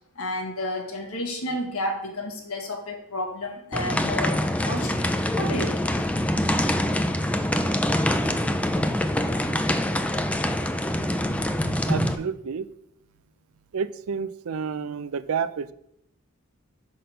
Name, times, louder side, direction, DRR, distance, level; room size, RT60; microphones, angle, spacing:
voice 1, 0.1-5.1 5.4-5.9, left 1 dB, 80° left, 3 dB, 1.4 m, -31 dB
sound 1, 3.7-12.1, left 1 dB, 5° left, 0.3 m, -25 dB
voice 2, 11.9-12.7 13.7-15.7, right 6 dB, 75° right, 14 dB, 0.4 m, -30 dB
5.8 x 5.1 x 5.6 m, 0.76 s
head